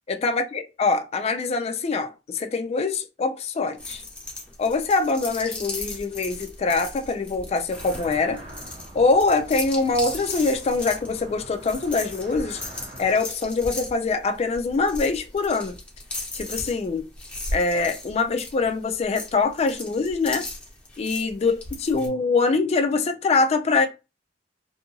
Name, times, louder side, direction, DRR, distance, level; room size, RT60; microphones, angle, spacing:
voice 1, 0.1-4.0 4.6-8.4 8.9-12.6 13.0-15.8 16.3-17.1 17.5-20.5 21.0-23.9, left 3 dB, 35° left, 0.3 m, -24 dB
sound 1, 3.8-22.1, left 2 dB, 10° left, 0.9 m, -37 dB
sound 2, 7.7-13.2, right 1 dB, 35° right, 1.0 m, -43 dB
2.6 x 2.5 x 2.7 m
head